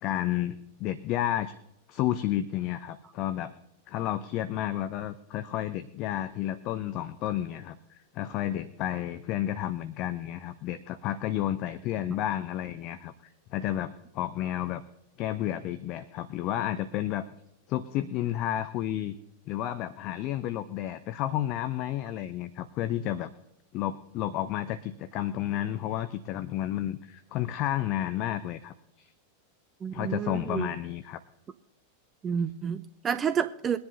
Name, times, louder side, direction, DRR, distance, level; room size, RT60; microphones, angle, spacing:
voice 1, 0.0-1.5 1.9-3.5 3.9-13.1 13.5-14.8 15.2-17.3 17.7-19.1 19.5-23.3 23.7-29.1 29.9-31.2, left 12 dB, 40° left, 12 dB, 0.7 m, -31 dB
voice 2, 29.8-30.7 32.2-33.8, right 7 dB, 25° right, 12 dB, 0.5 m, -30 dB
22.5 x 10.5 x 2.8 m, 0.83 s
figure-of-eight pair, 90°, 0 cm